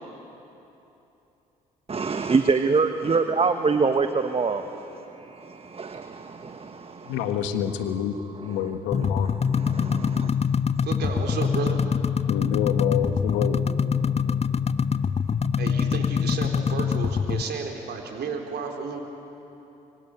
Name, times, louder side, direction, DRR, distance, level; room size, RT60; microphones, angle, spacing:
voice 1, 1.9-7.1 9.6-10.3, right 4 dB, 30° right, 8 dB, 1.3 m, -25 dB
voice 2, 7.0-9.3 12.3-13.7, left 9 dB, 70° left, 8 dB, 1.6 m, -27 dB
sound 1, 8.9-17.4, left 6 dB, 30° left, 0.8 m, -24 dB
voice 3, 10.8-11.8 15.6-19.0, right 5 dB, 55° right, 3 dB, 4.1 m, -32 dB
24.5 x 24.0 x 9.2 m, 3.0 s
hypercardioid pair, 50°, 20 cm